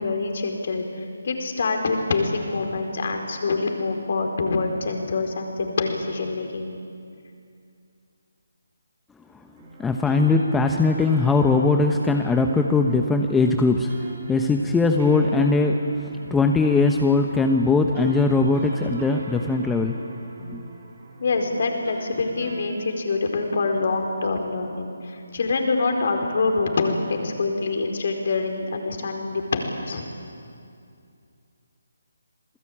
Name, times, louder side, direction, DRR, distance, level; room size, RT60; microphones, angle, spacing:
voice 1, 0.0-6.8 21.2-30.0, left 3 dB, 55° left, 3 dB, 4.6 m, -25 dB
sound 1, 9.5-22.6, right 2 dB, 35° right, 6.8 m, -42 dB
voice 2, 9.8-13.9 14.3-15.9 16.3-20.0 20.5-20.6, left 3 dB, 5° left, 3 dB, 1.1 m, -20 dB
27.0 x 20.0 x 8.8 m, 2.4 s
figure-of-eight pair, 150°, 0 cm